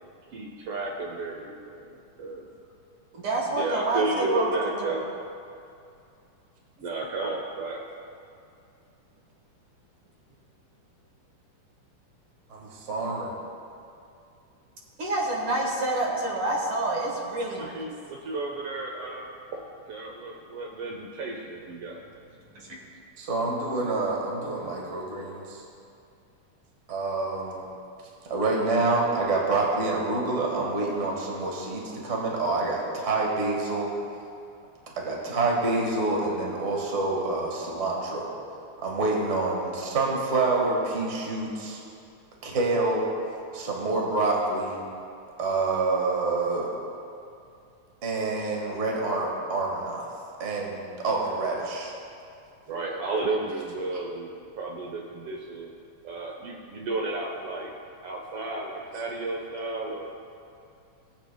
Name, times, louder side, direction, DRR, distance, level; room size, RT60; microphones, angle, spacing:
voice 1, 0.3-2.5 3.5-5.0 6.8-7.8 17.6-19.3 19.5-19.6 19.9-22.0 52.7-55.7 56.0-57.7 58.0-60.1, right 2 dB, 80° right, 0 dB, 1.3 m, -32 dB
voice 2, 3.1-4.1 4.3-4.5 4.8-4.9 7.2-7.3 15.0-17.8 22.5-22.8, right 2 dB, 50° right, -2 dB, 2.0 m, -28 dB
voice 3, 12.5-13.3 23.2-25.6 26.9-27.6 28.3-33.9 35.0-38.3 38.8-41.8 42.4-43.1 43.5-44.8 45.4-46.7 48.0-50.1 50.4-51.9, right 3 dB, 35° right, -2 dB, 1.2 m, -27 dB
18.5 x 8.5 x 2.3 m, 2.5 s
omnidirectional pair, 3.6 m